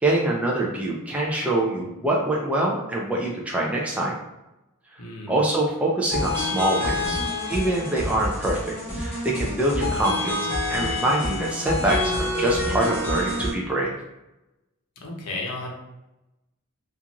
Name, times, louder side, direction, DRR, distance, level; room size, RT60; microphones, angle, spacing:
voice 1, 0.0-4.2 5.3-7.2 7.5-10.4 10.7-13.9, right 1 dB, 5° right, -3 dB, 0.3 m, -24 dB
voice 2, 5.0-5.4 15.0-15.7, left 2 dB, 80° left, -2 dB, 0.7 m, -33 dB
sound 1, 6.1-13.5, left 2 dB, 10° left, 0.9 m, -27 dB
2.4 x 2.4 x 2.8 m, 0.96 s
head